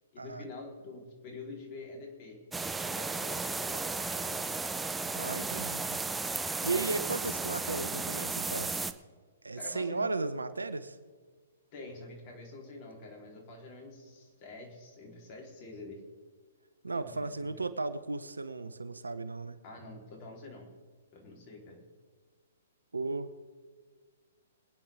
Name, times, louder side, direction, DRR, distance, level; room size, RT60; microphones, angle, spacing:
voice 1, 0.1-2.4 2.9-4.5 9.5-10.0 11.7-16.0 16.9-17.7 19.6-20.7 21.1-21.8, left 2 dB, 40° left, 0 dB, 3.6 m, -47 dB
sound 1, 2.5-8.9, right 3 dB, 10° right, 0.6 m, -34 dB
voice 2, 5.1-6.0 6.6-8.8 9.4-11.0 16.8-19.6 22.9-23.3, right 3 dB, 90° right, 12 dB, 1.0 m, -35 dB
24.0 x 9.8 x 3.6 m, 1.5 s
hypercardioid pair, 125°, 0 cm